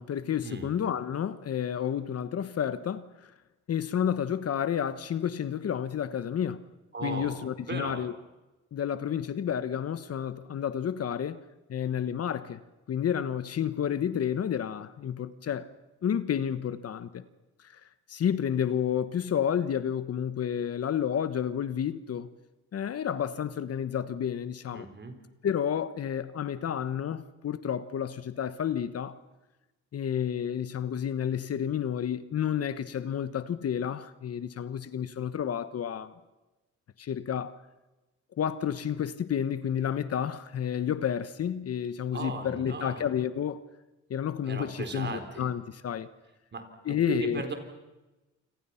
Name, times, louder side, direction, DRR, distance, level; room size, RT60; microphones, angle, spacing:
voice 1, 0.0-3.3 3.7-6.6 7.0-8.2 8.7-11.4 11.7-12.6 12.9-15.7 16.0-17.2 17.6-17.8 18.1-22.3 22.7-24.9 25.4-29.2 29.9-36.1 37.0-37.6 38.4-43.6 44.1-46.1 46.8-47.5, left 9 dB, 55° left, 1.1 m, -30 dB
voice 2, 6.9-8.1 24.7-25.2 42.1-43.1 44.5-45.4 46.5-47.5, right 4 dB, 35° right, 4.2 m, -37 dB
28.5 x 26.0 x 5.8 m
cardioid pair, 90°, 30 cm